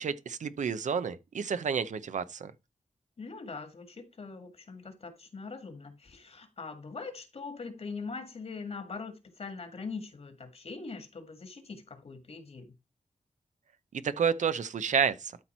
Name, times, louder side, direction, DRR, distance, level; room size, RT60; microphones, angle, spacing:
voice 1, 0.0-2.5 14.0-15.3, right 6 dB, 80° right, 0.7 m, -30 dB
voice 2, 3.2-12.8, left 4 dB, 55° left, 1.9 m, -42 dB
12.5 x 4.4 x 4.4 m
wide cardioid pair, 115°, 13 cm